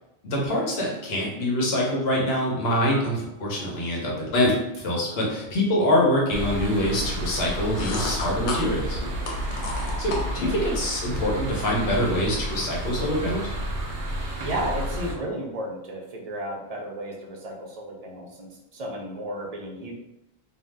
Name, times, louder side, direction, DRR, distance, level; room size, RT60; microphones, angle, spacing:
voice 1, 0.2-9.0 10.0-13.4, left 1 dB, 70° left, -2 dB, 1.0 m, -25 dB
sound 1, 6.3-15.1, right 1 dB, 90° right, 0.9 m, -31 dB
sound 2, 7.4-10.7, left 2 dB, 90° left, 0.9 m, -32 dB
voice 2, 14.4-19.9, right 1 dB, 55° right, -1 dB, 0.4 m, -33 dB
2.6 x 2.0 x 3.2 m, 0.91 s
omnidirectional pair, 1.1 m